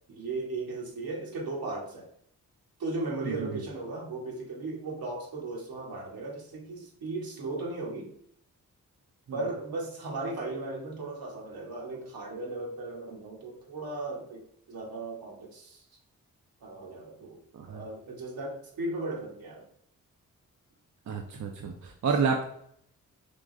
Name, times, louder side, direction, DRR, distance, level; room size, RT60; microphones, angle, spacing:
voice 1, 0.1-2.1 2.8-8.1 9.3-15.8 16.6-17.4 17.7-19.7, right 2 dB, 75° right, -2 dB, 1.3 m, -36 dB
voice 2, 21.1-22.5, right 5 dB, 50° right, 3 dB, 0.6 m, -29 dB
3.7 x 3.1 x 3.7 m, 0.69 s
supercardioid pair, 45°, 36 cm